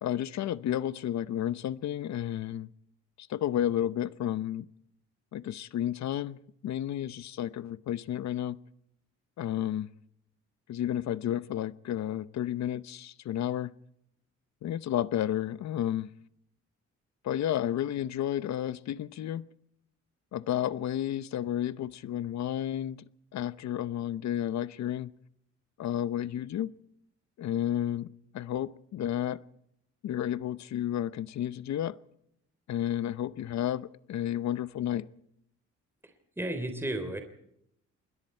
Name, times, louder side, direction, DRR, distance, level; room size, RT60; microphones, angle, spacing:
voice 1, 0.0-2.7 3.2-4.7 5.3-6.4 6.6-8.6 9.4-9.9 10.7-13.7 14.6-16.1 17.2-19.5 20.3-23.0 23.3-25.1 25.8-26.7 27.4-29.4 30.0-32.0 32.7-35.1, left 11 dB, 65° left, 0.8 m, -31 dB
voice 2, 36.4-37.2, right 1 dB, 10° right, 3.5 m, -32 dB
27.5 x 21.0 x 4.5 m
cardioid pair, 90°, 30 cm